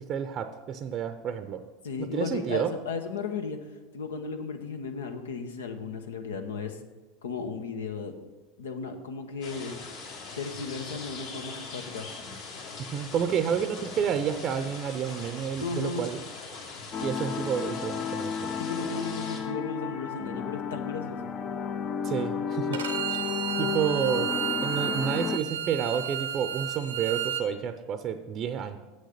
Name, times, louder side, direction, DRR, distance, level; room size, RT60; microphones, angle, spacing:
voice 1, 0.0-1.6 2.0-2.7 12.8-16.2 17.0-18.5 22.0-22.8 23.1-23.2 23.6-24.3 24.6-28.8, right 8 dB, 45° right, 9 dB, 0.6 m, -30 dB
voice 2, 1.8-3.6 3.9-6.8 7.2-8.1 8.6-9.8 10.3-12.1 15.6-16.1 18.6-21.3, left 4 dB, 85° left, 7 dB, 0.9 m, -35 dB
sound 1, 9.4-19.4, left 4 dB, 65° left, 2.8 m, -41 dB
sound 2, 16.9-25.4, left 7 dB, 40° left, 0.5 m, -32 dB
Bowed string instrument, 22.7-27.4, right 10 dB, 90° right, 0.8 m, -32 dB
7.9 x 6.5 x 6.6 m, 1.2 s
hypercardioid pair, 90°, 0 cm